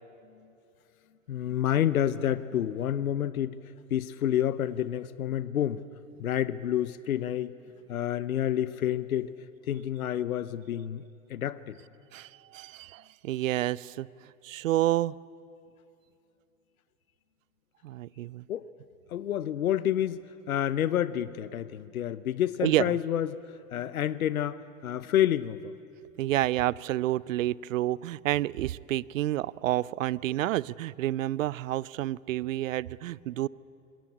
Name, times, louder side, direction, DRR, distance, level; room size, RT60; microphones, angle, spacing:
voice 1, 1.3-3.6 3.9-5.8 6.2-7.6 7.9-9.3 9.6-11.0 11.3-11.8 18.5-18.6 19.1-25.7, left 11 dB, 75° left, 17 dB, 0.8 m, -29 dB
voice 2, 12.1-14.1 14.4-15.1 17.8-18.4 22.6-22.9 26.2-33.5, right 15 dB, 65° right, 23 dB, 0.6 m, -29 dB
26.0 x 21.5 x 8.6 m, 2.7 s
figure-of-eight pair, 100°, 43 cm